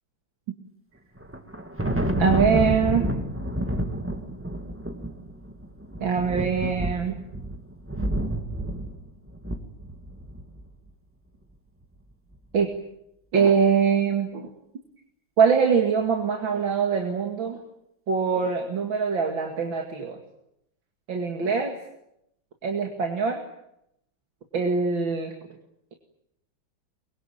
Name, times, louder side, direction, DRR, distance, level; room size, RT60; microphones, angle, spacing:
Thunder, 1.2-10.6, right 1 dB, 5° right, 1.7 m, -29 dB
voice 1, 2.2-3.0 6.0-7.2 12.5-12.7 13.3-14.5 15.4-17.6 18.1-20.2 21.1-21.7 22.6-23.4 24.5-25.3, right 6 dB, 75° right, 3 dB, 2.9 m, -23 dB
23.5 x 23.0 x 9.1 m, 0.80 s
omnidirectional pair, 2.2 m